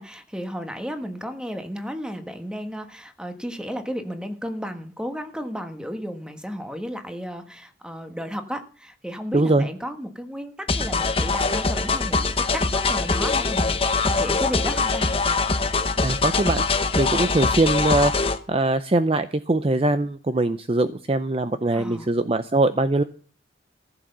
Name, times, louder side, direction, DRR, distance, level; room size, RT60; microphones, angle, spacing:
voice 1, 0.0-15.1 21.7-22.1, equal, 5° right, 1.4 m, -33 dB
voice 2, 9.3-9.7 16.0-16.6 17.0-23.0, right 2 dB, 30° right, 0.5 m, -22 dB
sound 1, 10.7-18.4, left 4 dB, 30° left, 0.9 m, -23 dB
15.5 x 7.6 x 6.7 m
head